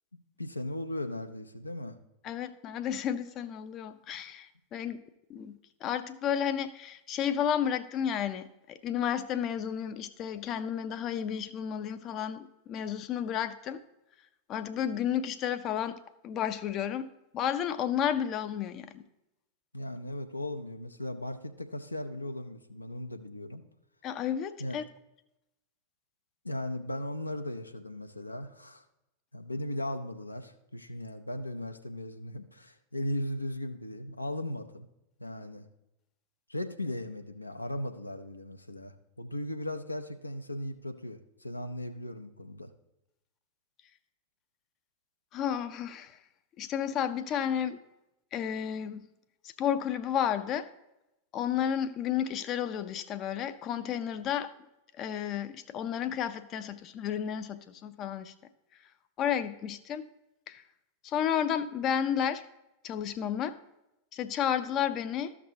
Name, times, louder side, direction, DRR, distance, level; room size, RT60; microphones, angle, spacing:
voice 1, 0.4-2.0 19.7-23.6 24.6-24.8 26.4-28.8 29.3-34.9 35.2-35.7 36.5-42.7, left 1 dB, 85° left, 7 dB, 0.6 m, -37 dB
voice 2, 2.2-5.0 5.3-13.8 14.5-16.0 16.2-19.0 24.0-24.8 45.3-46.2 46.6-47.8 48.3-49.1 49.4-50.7 51.3-54.5 55.0-58.3 59.2-60.1 60.5-60.6 61.0-62.4 62.8-63.6 64.1-65.4, left 9 dB, 35° left, 11 dB, 0.5 m, -32 dB
13.5 x 6.0 x 2.8 m, 0.91 s
figure-of-eight pair, 90°, 0 cm